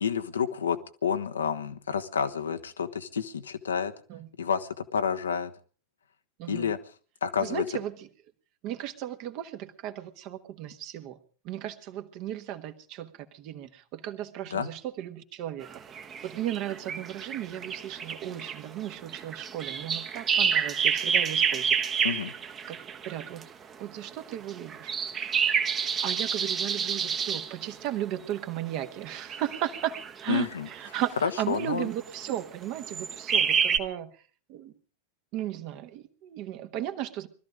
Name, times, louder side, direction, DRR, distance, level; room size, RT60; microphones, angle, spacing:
voice 1, 0.0-3.9 4.4-5.5 6.5-6.8 7.2-7.7 14.5-14.7 22.0-22.3 30.3-30.7 31.2-31.9, left 7 dB, 70° left, 9 dB, 1.1 m, -29 dB
voice 2, 6.4-6.7 7.4-8.1 8.6-11.2 11.4-15.7 16.2-21.9 22.7-22.8 23.0-23.5 23.8-25.0 26.0-29.9 30.2-34.2 34.5-34.7 35.3-37.3, right 12 dB, 45° right, 8 dB, 1.4 m, -35 dB
sound 1, 15.6-23.4 24.3-27.5 28.9-30.2 30.7-31.1 32.1-32.4 32.8-33.8, right 7 dB, 25° right, 1.2 m, -28 dB
21.0 x 13.0 x 5.0 m, 0.40 s
figure-of-eight pair, 90°, 0 cm